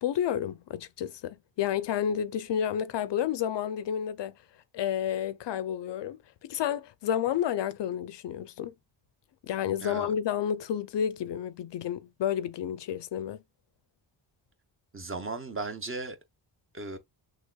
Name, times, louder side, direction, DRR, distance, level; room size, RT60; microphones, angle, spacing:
voice 1, 0.0-4.3 4.7-8.7 9.4-13.4, left 9 dB, 65° left, 0.5 m, -30 dB
voice 2, 14.9-16.2 16.7-17.0, right 3 dB, 25° right, 0.6 m, -36 dB
6.1 x 2.2 x 2.3 m
wide cardioid pair, 120°, 48 cm